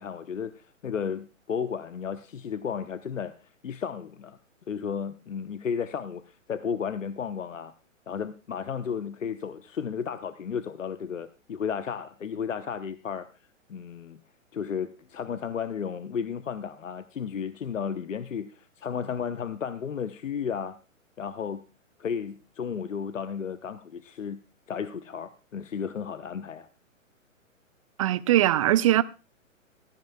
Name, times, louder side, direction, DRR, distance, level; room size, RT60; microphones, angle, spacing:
voice 1, 0.0-4.4 4.7-7.7 8.1-13.3 13.7-14.2 14.5-20.8 21.2-21.6 22.0-24.4 24.7-26.7, left 7 dB, 70° left, 0.9 m, -33 dB
voice 2, 28.0-29.0, right 13 dB, 25° right, 0.5 m, -21 dB
15.5 x 14.5 x 2.3 m
figure-of-eight pair, 120°, 40 cm